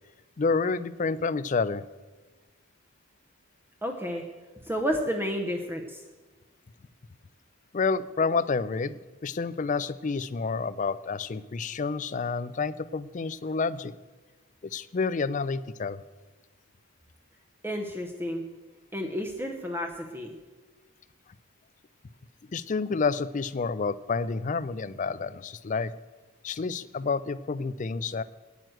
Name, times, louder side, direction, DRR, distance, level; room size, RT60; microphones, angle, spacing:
voice 1, 0.4-1.8 7.7-13.9 14.6-16.0 22.5-25.9 26.4-28.2, left 4 dB, 35° left, 16 dB, 0.4 m, -29 dB
voice 2, 3.8-4.2 4.6-6.0 17.6-18.4 18.9-20.4, equal, 10° right, 3 dB, 0.7 m, -31 dB
9.4 x 9.1 x 7.7 m, 1.3 s
head